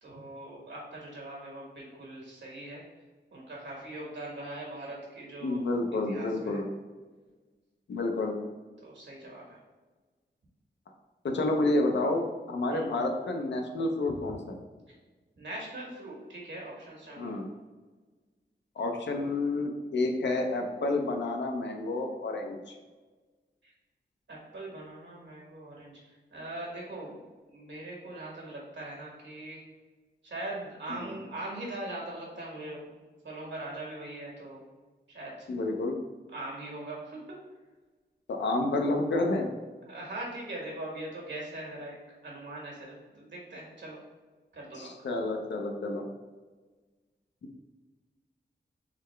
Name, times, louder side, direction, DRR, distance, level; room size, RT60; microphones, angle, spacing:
voice 1, 0.0-2.8 3.3-5.7 6.1-6.6 8.8-9.6 12.7-12.8 15.4-17.5 23.6-23.7 24.3-26.0 26.3-27.2 27.5-29.6 30.2-33.0 33.2-34.6 35.1-35.5 36.3-37.4 39.9-42.0 42.2-44.0 44.5-45.1, right 1 dB, 80° right, -3 dB, 1.4 m, -41 dB
voice 2, 5.4-6.7 7.9-8.4 11.2-14.6 17.2-17.5 18.8-22.6 30.9-31.1 35.5-35.9 38.3-39.5 44.7-46.0, left 2 dB, 85° left, 3 dB, 0.6 m, -29 dB
3.9 x 3.2 x 3.2 m, 1.3 s
wide cardioid pair, 130°, 18 cm